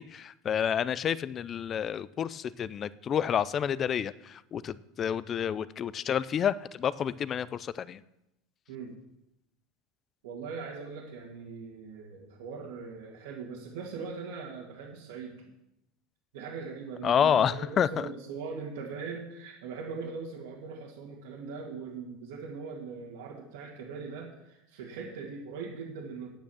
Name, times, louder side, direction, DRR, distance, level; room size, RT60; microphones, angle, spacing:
voice 1, 0.0-8.0 17.0-18.1, left 8 dB, 25° left, 18 dB, 0.4 m, -29 dB
voice 2, 10.2-15.5 16.3-26.3, right 5 dB, 90° right, -5 dB, 2.2 m, -40 dB
9.2 x 8.8 x 7.2 m, 0.89 s
supercardioid pair, 155°, 0 cm